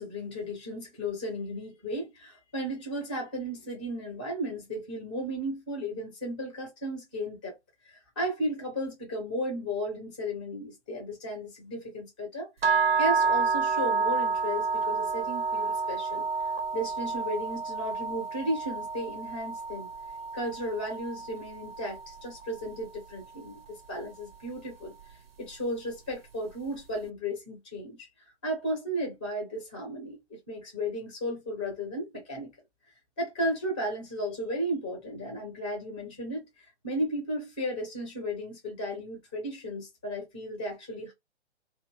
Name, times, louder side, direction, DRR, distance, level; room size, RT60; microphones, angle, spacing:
voice 1, 0.0-7.6 7.8-12.5 13.0-19.9 20.3-24.9 25.4-28.1 28.4-32.5 33.2-41.1, equal, 10° left, 0.5 m, -34 dB
sound 1, 12.6-22.7, right 4 dB, 55° right, 0.5 m, -29 dB
2.6 x 2.2 x 3.3 m
figure-of-eight pair, 130°, 35 cm